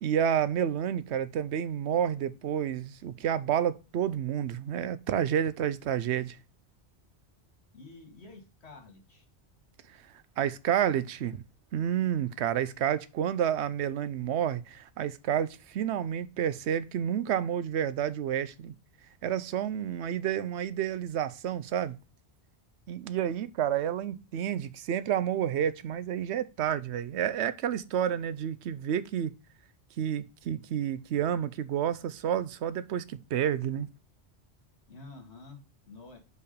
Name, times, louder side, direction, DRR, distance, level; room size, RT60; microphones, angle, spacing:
voice 1, 0.0-6.4 10.4-11.4 11.7-18.7 19.2-22.0 22.9-29.3 30.0-33.9, right 9 dB, 85° right, 0.9 m, -30 dB
voice 2, 7.7-9.3 34.9-36.2, left 3 dB, 75° left, 2.1 m, -49 dB
5.0 x 4.7 x 5.0 m
omnidirectional pair, 1.1 m